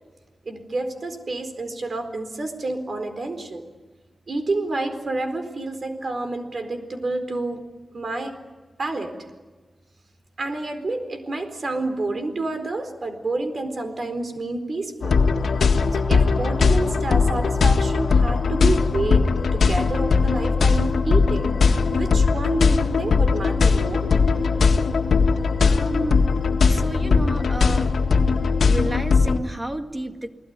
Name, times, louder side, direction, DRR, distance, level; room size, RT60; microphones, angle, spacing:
voice 1, 0.5-3.7 4.3-7.6 7.9-8.3 8.8-9.1 10.4-15.2 15.9-19.2 19.5-24.1, right 2 dB, 50° right, 7 dB, 4.3 m, -29 dB
sound 1, 15.0-29.4, left 4 dB, 90° left, 1.8 m, -19 dB
voice 2, 25.6-26.3 26.7-27.9 28.7-30.3, right 1 dB, 20° right, 5 dB, 2.0 m, -31 dB
29.5 x 20.5 x 9.7 m, 1.3 s
wide cardioid pair, 125°, 0 cm